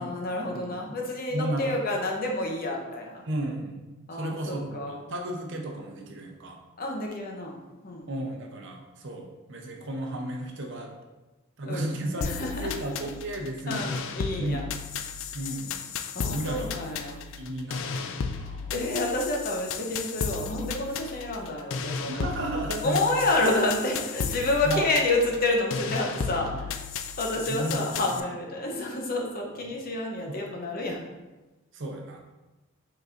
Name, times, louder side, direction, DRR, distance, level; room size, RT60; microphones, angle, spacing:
voice 1, 0.0-3.2 4.1-5.0 6.8-8.1 11.6-12.7 13.7-14.6 16.1-17.2 18.7-22.3 22.8-26.8 27.2-31.0, left 2 dB, 45° left, 0 dB, 0.7 m, -29 dB
voice 2, 1.3-1.7 3.3-6.6 8.1-11.0 11.6-12.3 12.6-14.8 15.3-15.8 16.3-16.7 17.4-18.8 22.1-23.0 24.3-24.9 26.3-26.7 27.4-28.2 29.5-29.8 30.3-30.4 31.7-32.2, right 1 dB, 55° right, 2 dB, 0.7 m, -34 dB
sound 1, 12.2-28.2, left 6 dB, 65° left, 0.3 m, -34 dB
5.3 x 3.9 x 2.5 m, 1.1 s
head